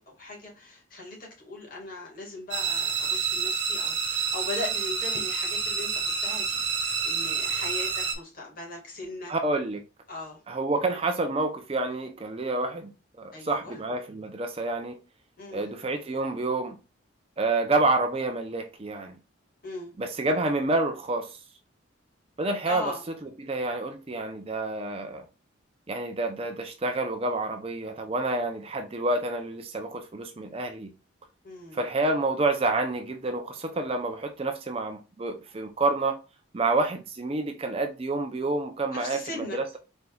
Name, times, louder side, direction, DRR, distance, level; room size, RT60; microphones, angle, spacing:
voice 1, 0.0-9.3 10.1-10.4 13.3-13.8 15.4-15.7 19.6-19.9 22.6-23.1 31.4-31.8 38.9-39.6, left 2 dB, 45° left, 1.7 m, -39 dB
sound 1, 2.5-8.1, right 5 dB, 65° right, 1.1 m, -28 dB
voice 2, 9.3-9.8 10.5-12.9 13.2-15.0 15.5-16.8 17.4-19.2 20.0-21.3 22.4-22.9 23.4-25.2 25.9-30.9 31.7-36.2 36.5-39.8, right 2 dB, 30° right, 0.4 m, -28 dB
4.4 x 3.9 x 2.2 m
head